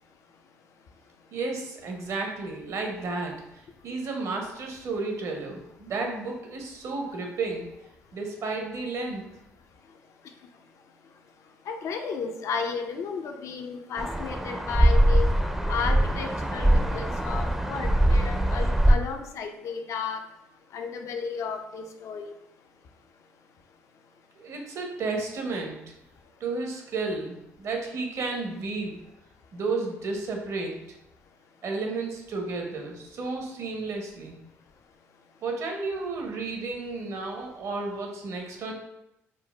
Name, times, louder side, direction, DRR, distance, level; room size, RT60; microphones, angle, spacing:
voice 1, 1.3-3.4 3.8-7.7 8.1-9.2 24.4-25.8 26.4-29.0 29.5-30.7 31.6-34.4 35.4-38.7, right 3 dB, 60° right, 2 dB, 0.7 m, -32 dB
voice 2, 11.7-15.3 15.7-20.2 20.7-22.3, left 5 dB, 60° left, 5 dB, 0.4 m, -33 dB
sound 1, 14.0-19.0, right 1 dB, 5° right, 0.4 m, -22 dB
3.8 x 2.0 x 2.2 m, 0.88 s
supercardioid pair, 60°, 6 cm